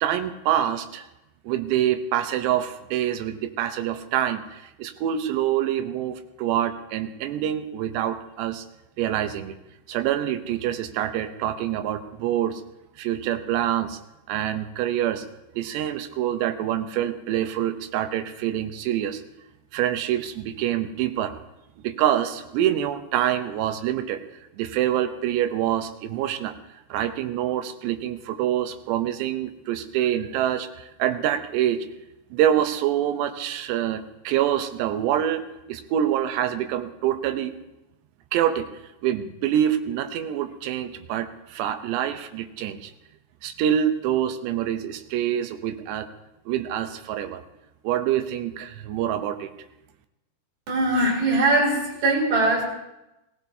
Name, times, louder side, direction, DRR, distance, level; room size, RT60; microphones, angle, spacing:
voice 1, 0.0-1.1 1.4-8.7 9.0-9.5 9.9-12.6 13.0-14.0 14.3-15.3 15.5-19.2 19.7-21.4 21.8-24.2 24.6-26.5 26.9-31.9 32.3-37.6 38.3-38.7 39.0-42.9 43.4-46.1 46.5-47.4 47.8-49.5, right 11 dB, 80° right, 8 dB, 3.0 m, -26 dB
voice 2, 50.7-52.7, right 2 dB, 55° right, -2 dB, 4.3 m, -21 dB
20.5 x 15.5 x 2.8 m, 0.94 s
omnidirectional pair, 5.0 m